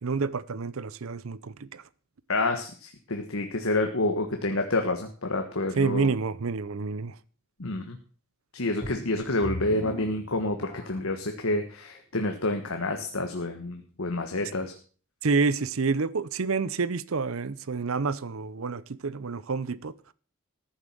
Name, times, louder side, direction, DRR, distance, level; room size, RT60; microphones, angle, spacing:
voice 1, 0.0-1.8 5.8-7.1 15.2-20.0, right 4 dB, 65° right, 0.7 m, -28 dB
voice 2, 2.3-6.1 7.6-8.0 8.5-14.7, left 2 dB, 65° left, 1.5 m, -28 dB
sound 1, 8.8-11.2 11.9-12.0 12.6-12.7, equal, 20° left, 4.8 m, -39 dB
14.5 x 7.3 x 7.5 m
head